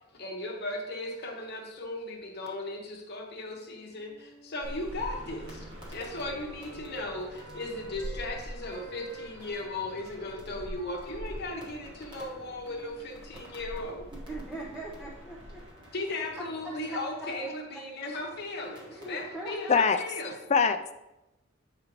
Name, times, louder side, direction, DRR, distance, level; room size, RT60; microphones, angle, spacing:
voice 1, 0.1-14.0 15.9-20.3, left 2 dB, 55° left, 1 dB, 0.9 m, -37 dB
Wind instrument woodwind instrument, 3.5-8.4 8.6-14.0, left 1 dB, 45° right, 0.8 m, -52 dB
sound 1, 4.6-15.7, equal, 65° right, 2.0 m, -45 dB
sound 2, 5.4-19.5, equal, 25° right, 1.4 m, -54 dB
voice 2, 14.3-15.6 18.9-19.8, right 2 dB, 5° right, -5 dB, 0.7 m, -40 dB
voice 3, 19.7-20.9, left 5 dB, 35° left, 9 dB, 0.3 m, -25 dB
7.3 x 4.9 x 3.0 m, 0.96 s
head